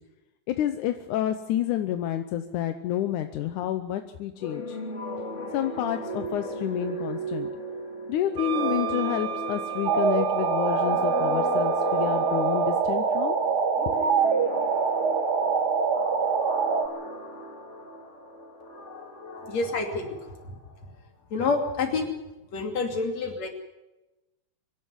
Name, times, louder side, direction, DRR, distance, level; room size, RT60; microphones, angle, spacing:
voice 1, 0.5-4.8 5.5-7.5 8.1-13.4 13.9-14.0, left 11 dB, 85° left, 8 dB, 2.3 m, -29 dB
sound 1, 4.4-20.8, equal, 25° left, 2.3 m, -36 dB
Wind instrument woodwind instrument, 8.4-12.8, right 13 dB, 80° right, 0.9 m, -35 dB
sound 2, 9.9-16.9, right 5 dB, 45° right, 1.5 m, -24 dB
voice 2, 19.5-20.2 21.3-22.1 22.5-23.5, left 4 dB, 60° left, 3 dB, 3.9 m, -27 dB
24.5 x 11.0 x 9.7 m, 1.0 s
omnidirectional pair, 3.5 m